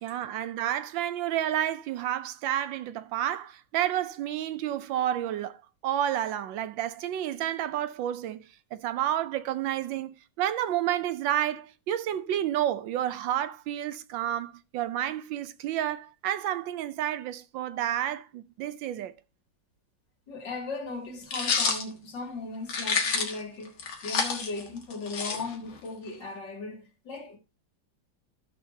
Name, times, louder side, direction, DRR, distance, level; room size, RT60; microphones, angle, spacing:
voice 1, 0.0-5.6 5.8-8.4 8.7-19.1, right 11 dB, 75° right, 1.3 m, -30 dB
voice 2, 20.3-27.4, left 3 dB, 65° left, 3.1 m, -37 dB
sound 1, 21.3-21.8 22.7-23.4 23.8-25.8, left 5 dB, 85° left, 2.4 m, -28 dB
14.5 x 6.4 x 2.7 m
omnidirectional pair, 2.1 m